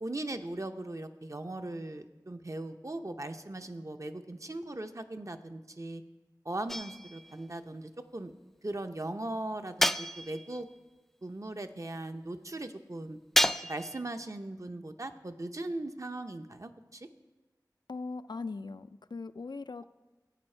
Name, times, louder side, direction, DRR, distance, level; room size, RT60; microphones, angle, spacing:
voice 1, 0.0-6.0 6.4-8.3 8.6-10.7 11.2-13.2 13.6-17.1, right 2 dB, 45° right, 7 dB, 0.7 m, -39 dB
sound 1, 6.7-7.3 9.8-10.6 13.3-14.0, equal, 5° left, 0.3 m, -29 dB
voice 2, 17.9-19.8, left 3 dB, 80° left, 11 dB, 0.4 m, -40 dB
14.0 x 8.7 x 4.4 m, 1.2 s
wide cardioid pair, 40°, 7 cm